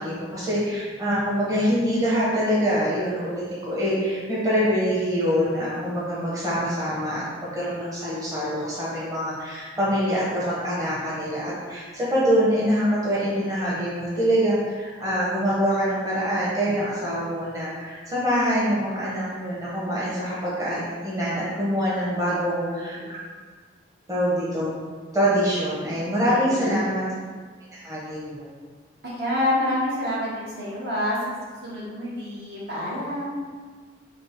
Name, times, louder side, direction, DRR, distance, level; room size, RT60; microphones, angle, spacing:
voice 1, 0.0-23.2 24.1-24.7 25.1-27.0 27.7-28.5, equal, 20° right, -8 dB, 0.9 m, -25 dB
voice 2, 22.2-23.1 26.5-27.0 29.0-33.4, left 1 dB, 55° right, -6 dB, 1.1 m, -28 dB
5.1 x 2.1 x 4.4 m, 1.5 s
head